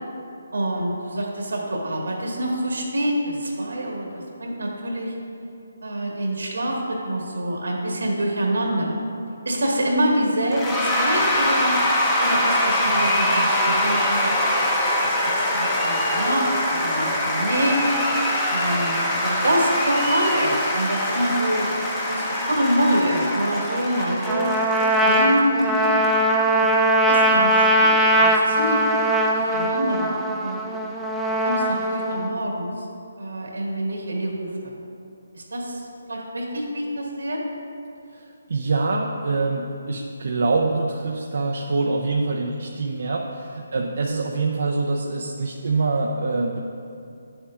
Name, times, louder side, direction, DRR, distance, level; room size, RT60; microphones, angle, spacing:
voice 1, 0.5-5.1 5.8-9.0 9.4-11.7 12.2-14.3 14.8-15.1 15.4-17.9 18.5-21.7 22.1-24.5 25.0-25.6 26.5-26.7 27.1-27.9 28.1-28.8 29.3-30.6 31.4-32.8 33.2-34.7 35.3-35.8 36.1-37.4, right 1 dB, 80° right, -1 dB, 1.8 m, -26 dB
Cheering / Applause / Crowd, 10.5-26.1, left 1 dB, 10° left, 0.9 m, -23 dB
Trumpet, 24.3-32.3, right 1 dB, 5° right, 0.4 m, -20 dB
voice 2, 38.5-46.6, right 3 dB, 65° right, 0 dB, 0.6 m, -24 dB
10.5 x 7.1 x 2.5 m, 2.6 s
figure-of-eight pair, 155°, 0 cm